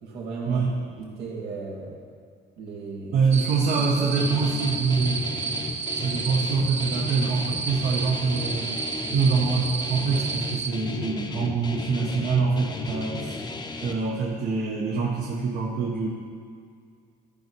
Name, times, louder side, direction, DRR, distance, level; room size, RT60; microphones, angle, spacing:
voice 1, 0.0-0.7 1.0-2.0 2.6-3.2 3.8-3.9, right 4 dB, 75° right, -3 dB, 2.1 m, -36 dB
voice 2, 3.1-5.2 5.9-8.8 9.1-13.5 13.8-16.1, right 4 dB, 60° right, -4 dB, 1.4 m, -25 dB
sound 1, 3.3-10.7, right 5 dB, 40° right, 0.7 m, -32 dB
Guitar, 4.2-13.9, left 3 dB, 25° left, 0.8 m, -34 dB
13.0 x 5.4 x 4.7 m, 2.2 s
cardioid pair, 110°, 17 cm